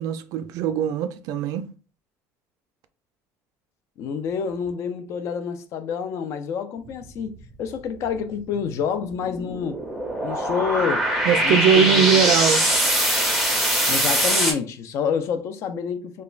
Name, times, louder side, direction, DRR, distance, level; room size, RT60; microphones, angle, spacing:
voice 1, 0.0-1.7 11.3-12.6, right 8 dB, 65° right, 0.3 m, -21 dB
voice 2, 4.0-9.8 10.2-11.1 11.4-12.0 13.9-16.2, left 7 dB, 45° left, 0.3 m, -28 dB
sound 1, 6.9-7.0 7.2-7.4 8.5-8.6 8.8-14.5, right 1 dB, ahead, 0.5 m, -22 dB
3.0 x 2.2 x 2.4 m
cardioid pair, 165°, 7 cm